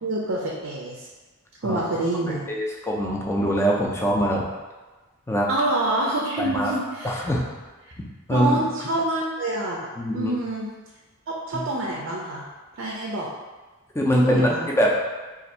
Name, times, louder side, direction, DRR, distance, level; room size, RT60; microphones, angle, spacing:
voice 1, 0.0-1.1 1.6-2.5 5.5-7.2 7.8-7.9 8.3-10.7 11.3-12.4 12.8-13.3 14.1-14.7, right 2 dB, 60° right, -2 dB, 0.5 m, -27 dB
voice 2, 2.5-4.5 5.3-5.5 6.4-6.7 7.0-7.4 8.3-8.6 10.0-10.3 11.5-11.6 14.0-14.9, equal, 15° left, -2 dB, 0.4 m, -22 dB
2.6 x 2.5 x 4.1 m, 1.3 s
head